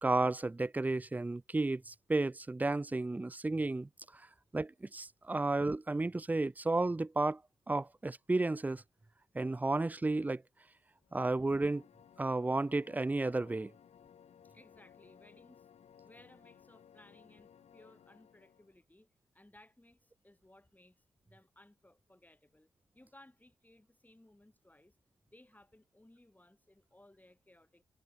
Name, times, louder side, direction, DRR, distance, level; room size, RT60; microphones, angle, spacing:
voice 1, 0.0-4.2 4.5-7.4 7.7-8.8 9.3-10.4 11.1-11.8 12.2-13.7, right 2 dB, 15° right, 0.4 m, -32 dB
sound 1, 11.0-18.8, left 8 dB, 75° left, 6.6 m, -61 dB
voice 2, 14.4-15.7 16.0-25.0 25.3-27.8, left 1 dB, 15° left, 6.8 m, -62 dB
supercardioid pair, 45°, 11 cm